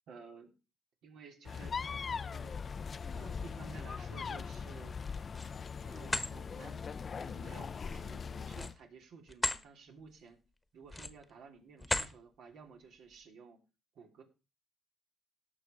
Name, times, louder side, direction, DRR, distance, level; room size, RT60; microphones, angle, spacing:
voice 1, 0.1-0.5 1.0-1.8 2.1-2.5 3.1-5.0 5.8-6.8 7.2-10.4 10.7-13.6 13.9-14.2, right 5 dB, 80° right, 2 dB, 3.2 m, -54 dB
sound 1, 1.5-8.7, left 6 dB, 40° left, 0.5 m, -40 dB
sound 2, 5.0-5.6 6.0-6.3 8.5-9.6 10.1-10.3 10.8-11.3 11.8-12.2, left 2 dB, 15° left, 1.2 m, -36 dB
17.5 x 6.4 x 4.5 m, 0.31 s
cardioid pair, 90°, 0 cm